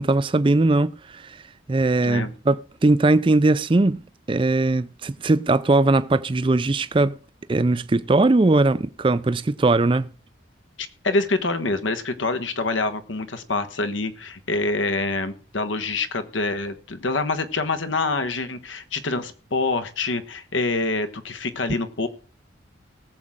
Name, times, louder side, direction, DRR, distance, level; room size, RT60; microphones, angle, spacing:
voice 1, 0.0-1.4 1.7-4.0 4.3-7.2 7.5-10.1, right 2 dB, 25° right, 0.4 m, -20 dB
voice 2, 2.0-2.3 10.8-22.1, left 3 dB, 80° left, 1.3 m, -26 dB
19.0 x 7.6 x 3.7 m
head